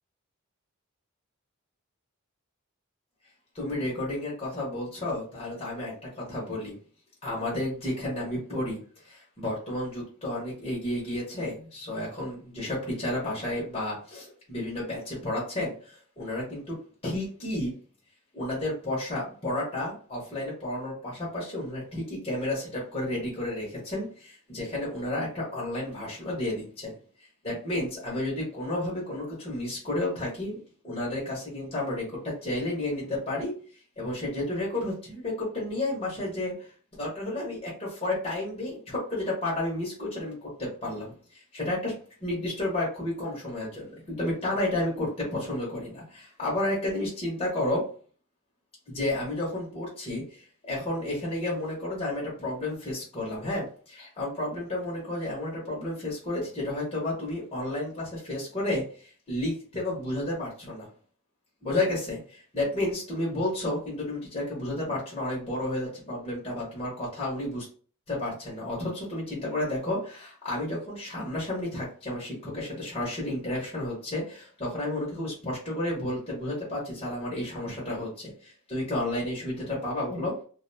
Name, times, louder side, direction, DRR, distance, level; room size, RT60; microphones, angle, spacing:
voice 1, 3.5-6.7 7.2-16.8 17.0-17.7 18.3-26.9 27.4-30.6 30.8-33.5 34.0-36.7 37.0-47.9 48.9-60.9 61.6-67.7 68.1-80.3, left 1 dB, 30° left, -5 dB, 0.9 m, -32 dB
2.5 x 2.2 x 2.6 m, 0.41 s
head